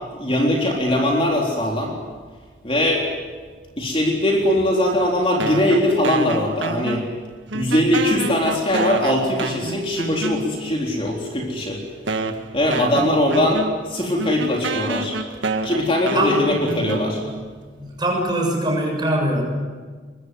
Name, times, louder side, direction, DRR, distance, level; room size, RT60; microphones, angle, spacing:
voice 1, 0.1-1.9 2.6-3.1 3.8-7.1 7.5-11.8 12.5-15.2 15.6-17.2, left 1 dB, 30° left, -1 dB, 3.8 m, -21 dB
sound 1, 5.4-7.2 7.5-10.8 11.5-11.6 12.1-17.5, right 3 dB, 70° right, 1.7 m, -28 dB
voice 2, 16.8-17.3 17.8-19.4, right 1 dB, 20° right, 0 dB, 6.9 m, -23 dB
24.0 x 22.0 x 9.5 m, 1.5 s
head